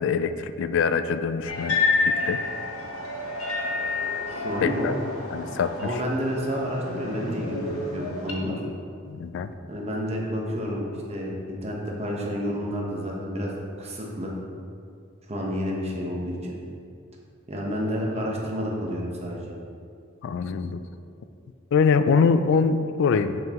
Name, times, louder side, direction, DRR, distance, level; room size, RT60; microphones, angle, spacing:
voice 1, 0.0-2.4 4.6-4.9 5.3-5.9 9.1-9.5 20.2-20.8 21.7-23.4, left 5 dB, 60° left, 11 dB, 0.3 m, -24 dB
sound 1, 1.5-8.3, left 3 dB, 85° left, 1.1 m, -29 dB
voice 2, 4.3-4.9 5.8-7.6 7.9-8.6 9.7-13.5 13.8-14.3 15.3-16.6 17.5-19.5, equal, 30° right, -2 dB, 1.0 m, -30 dB
6.9 x 6.3 x 3.0 m, 2.4 s
head